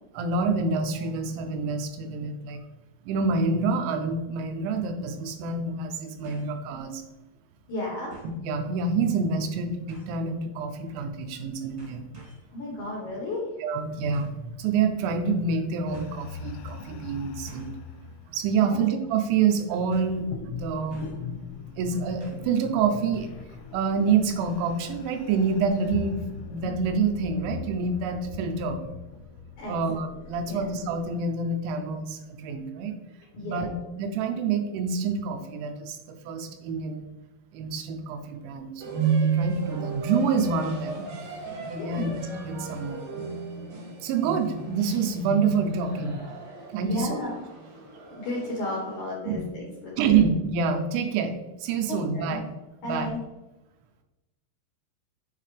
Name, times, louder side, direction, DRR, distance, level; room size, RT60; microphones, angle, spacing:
voice 1, 0.1-2.6 3.1-7.0 8.4-12.0 13.6-17.7 18.3-21.1 21.8-23.3 23.7-28.8 29.7-32.9 33.4-37.1 37.5-41.1 41.7-42.2 42.4-43.0 44.0-46.2 46.7-47.2 49.2-49.4 50.0-52.5 52.8-53.1, right 5 dB, 85° right, 6 dB, 2.9 m, -27 dB
sound 1, 6.2-6.6 7.0-7.1 8.1-8.4 9.9-10.2 11.2-11.4 11.8-12.5 14.1-14.4 15.4-15.5 15.9-16.1 17.4-17.8 18.3-18.6 18.8-18.9 19.9-20.2 20.9-21.3 22.2-22.5 22.8-22.9, right 1 dB, 35° right, 1.0 m, -49 dB
voice 2, 7.7-8.1 12.5-13.4 18.6-18.8 29.6-29.8 30.5-30.6 33.3-33.7 41.8-42.1 46.8-47.4 48.1-50.2 52.1-52.4 52.8-53.2, left 1 dB, 65° left, -4 dB, 2.0 m, -33 dB
sound 2, 15.9-31.2, left 6 dB, 85° left, 2.8 m, -41 dB
sound 3, 38.8-49.0, right 5 dB, 65° right, 2.2 m, -32 dB
7.5 x 4.5 x 3.2 m, 1.0 s
omnidirectional pair, 5.3 m